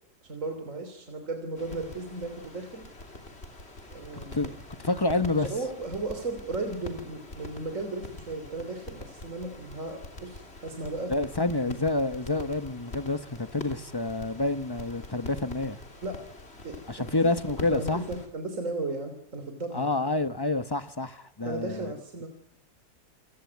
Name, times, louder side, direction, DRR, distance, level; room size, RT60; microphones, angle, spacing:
voice 1, 0.2-2.9 3.9-4.5 5.3-11.1 16.0-16.2 16.6-17.1 17.6-19.9 21.5-22.3, right 2 dB, 50° right, 3.5 m, -35 dB
sound 1, 1.6-18.3, left 2 dB, 40° left, 3.4 m, -44 dB
voice 2, 4.1-4.5 4.8-5.5 11.1-15.8 16.9-18.0 19.7-21.9, left 2 dB, 20° left, 0.9 m, -28 dB
28.5 x 17.0 x 9.5 m
omnidirectional pair, 1.7 m